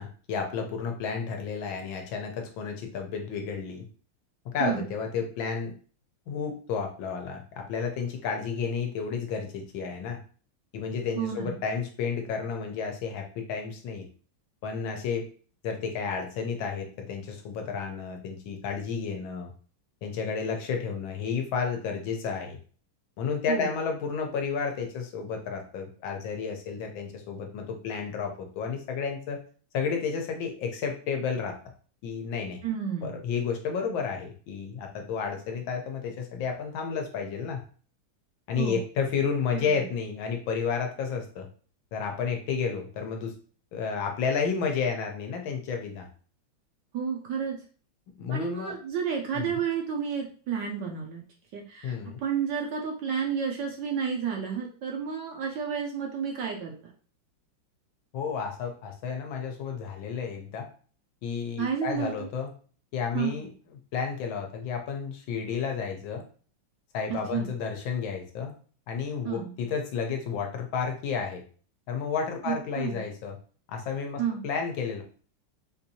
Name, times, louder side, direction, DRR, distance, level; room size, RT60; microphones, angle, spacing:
voice 1, 0.0-3.9 4.4-5.7 6.3-10.2 10.7-14.1 14.6-15.3 15.6-19.5 20.0-22.6 23.2-29.4 29.7-31.6 32.0-32.6 33.0-37.6 38.5-41.5 41.9-43.3 43.7-46.1 48.2-48.7 49.4-49.6 51.8-52.2 58.1-60.7 61.2-62.5 62.9-63.5 63.9-66.2 66.9-68.5 68.9-71.4 71.9-73.4 73.7-75.0, left 6 dB, 75° left, 3 dB, 1.3 m, -31 dB
voice 2, 11.2-11.6 23.5-23.7 32.6-33.2 38.6-38.8 39.5-39.8 46.9-47.6 48.3-51.2 51.5-56.8 61.6-62.3 63.1-63.4 67.1-67.5 69.2-69.5 72.4-73.0 74.2-74.4, right 7 dB, 75° right, 0 dB, 1.1 m, -31 dB
4.4 x 2.6 x 2.7 m, 0.41 s
omnidirectional pair, 2.4 m